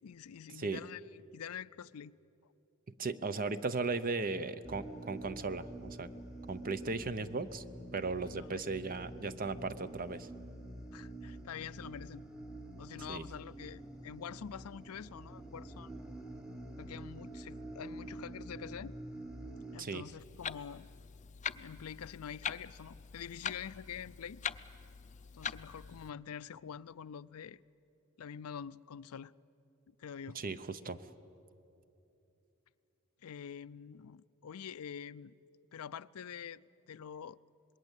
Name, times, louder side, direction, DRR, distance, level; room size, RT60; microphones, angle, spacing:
voice 1, 0.0-2.1 8.4-8.6 10.9-12.2 12.8-15.9 16.8-19.0 19.7-20.8 21.6-24.4 25.3-27.6 28.2-29.3 29.9-30.4 33.2-35.3 35.7-37.4, left 8 dB, 85° left, 0.5 m, -46 dB
voice 2, 3.0-6.1 6.5-7.6 7.9-10.3 13.1-13.2 19.8-20.0 30.3-31.0, right 3 dB, 40° right, 0.8 m, -36 dB
sound 1, 4.6-19.8, right 1 dB, 5° right, 1.1 m, -47 dB
Clock, 20.2-26.1, left 7 dB, 35° left, 0.5 m, -43 dB
26.0 x 21.0 x 8.3 m
head